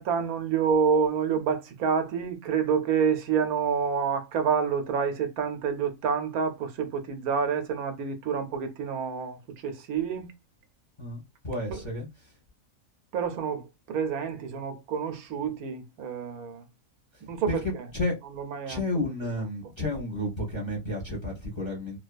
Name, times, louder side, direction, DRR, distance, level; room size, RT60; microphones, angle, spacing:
voice 1, 0.0-10.3 11.7-11.8 13.1-16.6 17.3-17.6 18.4-18.8, right 6 dB, 80° right, 1.1 m, -28 dB
voice 2, 11.0-12.3 17.1-17.2 17.5-18.1 18.7-22.0, left 1 dB, 25° left, 0.8 m, -32 dB
2.7 x 2.2 x 2.4 m
omnidirectional pair, 1.5 m